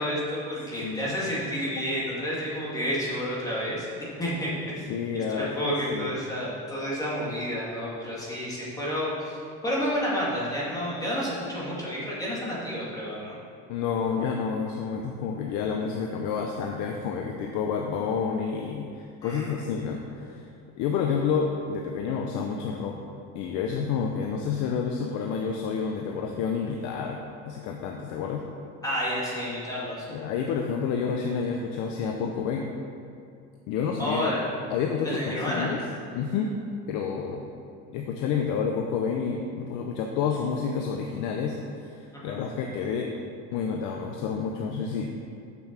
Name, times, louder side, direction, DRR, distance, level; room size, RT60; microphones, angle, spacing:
voice 1, 0.0-3.9 4.2-4.9 5.1-9.4 9.6-13.4 19.2-19.6 28.8-30.1 34.0-34.4 35.0-35.7 42.1-42.4, equal, 10° left, -7 dB, 2.1 m, -30 dB
voice 2, 4.9-6.2 13.7-20.5 20.7-23.0 23.3-27.2 27.5-28.4 30.1-32.7 33.7-34.3 34.7-35.8 36.1-36.5 36.9-37.5 37.9-43.1 43.5-45.1, left 6 dB, 80° left, 1 dB, 0.8 m, -29 dB
7.0 x 6.9 x 5.9 m, 2.4 s
cardioid pair, 165°, 30 cm